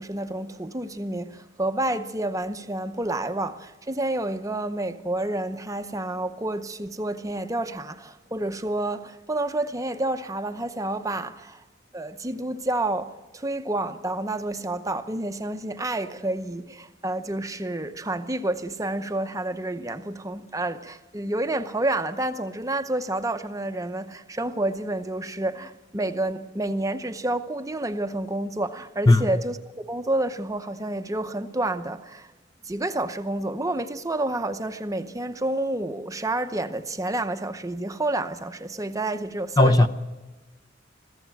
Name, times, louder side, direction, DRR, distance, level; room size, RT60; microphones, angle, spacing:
voice 1, 0.0-11.6 11.9-32.3 32.6-39.9, right 2 dB, 15° right, 0.7 m, -29 dB
voice 2, 39.6-39.9, left 2 dB, 20° left, 0.6 m, -16 dB
21.5 x 15.5 x 9.0 m
head